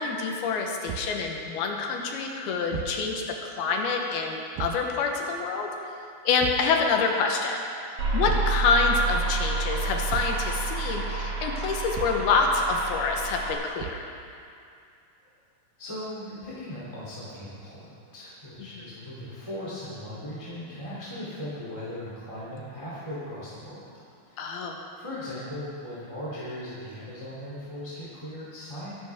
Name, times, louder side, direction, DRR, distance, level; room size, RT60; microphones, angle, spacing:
voice 1, 0.0-5.7 6.2-13.9 24.4-24.8, left 4 dB, 85° left, 1 dB, 3.1 m, -27 dB
Thump thud, 0.9-1.2 2.7-3.1 4.6-4.9 6.4-6.8 8.2-8.6 10.1-10.4 11.9-12.3 13.8-14.1, right 11 dB, 85° right, 2.4 m, -36 dB
sound 1, 8.0-13.5, right 3 dB, 65° right, 3.9 m, -29 dB
voice 2, 15.8-17.9 18.1-23.8 24.3-24.5 24.9-28.9, left 1 dB, 10° left, -10 dB, 2.7 m, -38 dB
23.0 x 11.0 x 3.6 m, 2.4 s
omnidirectional pair, 4.4 m